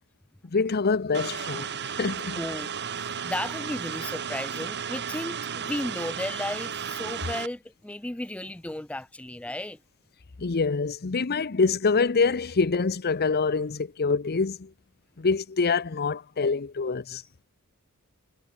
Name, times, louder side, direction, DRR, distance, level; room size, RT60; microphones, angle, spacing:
voice 1, 0.4-2.4 10.4-14.7 15.2-17.2, left 4 dB, 45° left, 0.7 m, -25 dB
sound 1, 1.1-7.5, right 8 dB, 50° right, 1.5 m, -34 dB
voice 2, 2.4-9.8, left 1 dB, 5° left, 0.4 m, -34 dB
Wind instrument woodwind instrument, 2.7-7.3, right 1 dB, 80° right, 2.9 m, -47 dB
head